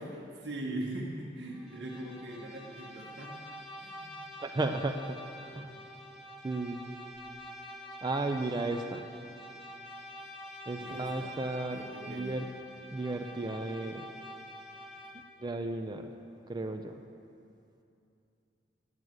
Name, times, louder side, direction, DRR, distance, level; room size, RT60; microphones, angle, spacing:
voice 1, 0.0-3.4 3.8-4.3 5.5-5.8 10.8-12.5, right 1 dB, 80° right, -2 dB, 1.3 m, -41 dB
Bowed string instrument, 1.5-15.4, equal, 5° right, 0.9 m, -47 dB
voice 2, 4.4-5.2 5.6-5.7 6.4-6.9 8.0-9.0 10.7-12.5 12.9-14.1 15.4-16.1 16.5-17.0, right 2 dB, 25° right, 5 dB, 0.4 m, -34 dB
9.7 x 9.3 x 7.7 m, 2.7 s
head